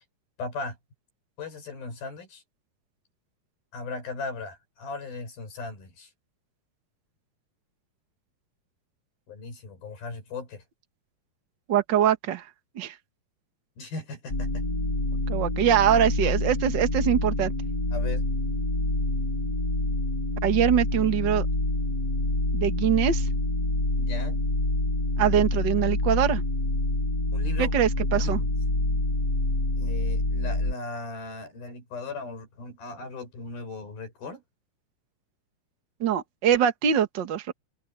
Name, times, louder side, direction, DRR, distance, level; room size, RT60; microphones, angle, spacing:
voice 1, 0.4-0.8 1.4-2.4 3.7-6.1 9.3-10.6 13.8-14.6 17.9-18.2 24.0-24.4 27.3-27.8 28.0-28.5 29.8-34.4, left 3 dB, 70° left, 8.6 m, -37 dB
voice 2, 11.7-12.4 12.7-12.9 15.3-17.5 20.4-21.5 22.5-23.3 25.2-26.4 27.6-28.4 36.0-37.5, right 9 dB, 85° right, 1.0 m, -23 dB
sound 1, 14.3-30.7, left 2 dB, 25° left, 8.0 m, -27 dB
omnidirectional pair, 4.5 m